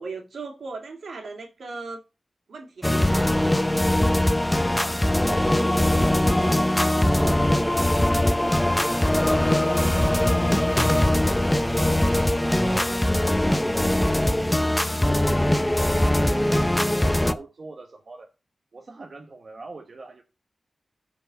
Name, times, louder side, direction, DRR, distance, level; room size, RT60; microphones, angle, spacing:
voice 1, 0.0-2.0 2.5-3.7, right 3 dB, 75° right, 2.3 m, -38 dB
sound 1, 2.8-17.3, left 1 dB, 10° left, 0.5 m, -21 dB
voice 2, 4.7-7.4 8.3-8.7 12.4-14.3 15.1-15.3 15.7-18.3 18.7-20.2, right 3 dB, 50° right, 1.1 m, -43 dB
13.5 x 4.7 x 4.0 m
wide cardioid pair, 130°, 0 cm